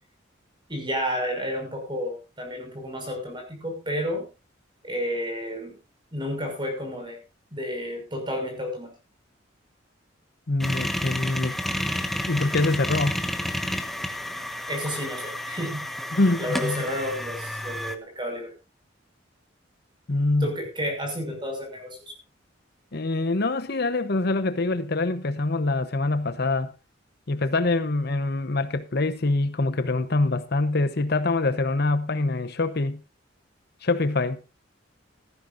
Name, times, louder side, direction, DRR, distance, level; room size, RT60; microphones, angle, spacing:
voice 1, 0.7-4.3 4.8-5.8 6.1-7.2 7.5-8.9 14.7-15.9 16.4-18.5 20.4-22.1, equal, 25° right, 6.2 m, -31 dB
voice 2, 10.5-11.6 12.3-13.2 16.1-16.8 20.1-20.5 22.9-26.7 27.3-33.0 33.8-34.4, left 2 dB, 55° left, 0.9 m, -24 dB
sound 1, 10.6-17.9, left 1 dB, ahead, 1.3 m, -31 dB
17.5 x 14.0 x 2.6 m
head